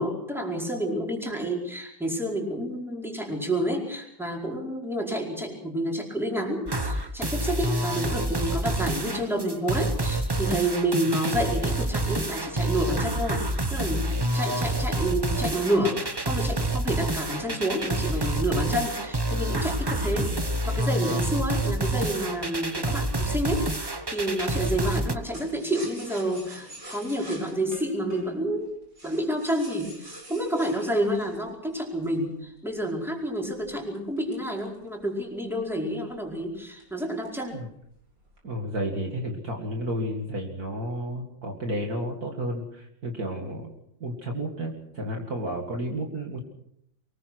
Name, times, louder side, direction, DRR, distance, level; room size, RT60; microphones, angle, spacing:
voice 1, 0.0-20.3 20.6-23.7 24.1-28.7 29.0-37.6, right 1 dB, ahead, -1 dB, 4.8 m, -29 dB
sound 1, 6.7-25.1, right 1 dB, 20° right, 0.7 m, -28 dB
sound 2, 25.3-32.2 32.8-35.2 35.6-35.7 36.0-36.3 36.8-37.5 37.8-38.4, equal, 70° right, 7.1 m, -45 dB
voice 2, 38.4-43.7 44.0-46.4, right 1 dB, 50° right, 1 dB, 2.7 m, -32 dB
24.0 x 21.0 x 6.2 m, 0.74 s
omnidirectional pair, 2.1 m